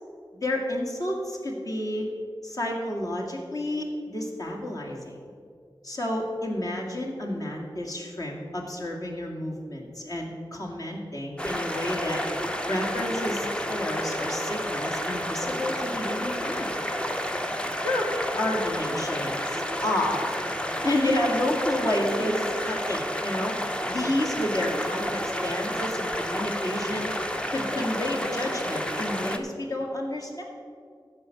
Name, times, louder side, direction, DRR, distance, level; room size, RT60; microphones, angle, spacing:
voice 1, 0.4-2.1 2.4-5.2 5.8-12.2 12.7-16.8 17.8-20.3 20.8-27.1 27.5-30.4, left 1 dB, 45° left, -1 dB, 2.0 m, -30 dB
sound 1, 11.4-29.4, equal, 10° left, 0.7 m, -30 dB
14.0 x 5.1 x 6.5 m, 2.2 s
wide cardioid pair, 70°, 9 cm